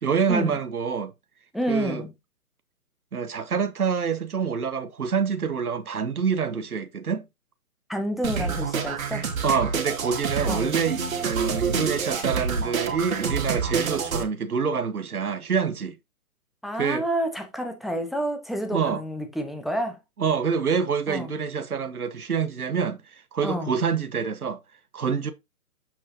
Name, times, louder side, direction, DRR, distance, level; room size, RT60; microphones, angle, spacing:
voice 1, 0.0-1.1 1.7-2.0 3.1-7.3 9.4-16.0 16.8-17.0 18.7-19.0 20.2-24.6 24.9-25.3, right 6 dB, 90° right, 1.2 m, -26 dB
voice 2, 1.5-2.1 7.9-9.3 10.5-10.7 16.6-20.0 21.1-21.3 23.4-23.7, equal, ahead, 0.3 m, -29 dB
sound 1, 8.2-14.2, right 5 dB, 65° right, 2.3 m, -27 dB
7.6 x 6.2 x 2.7 m
hypercardioid pair, 150°, 43 cm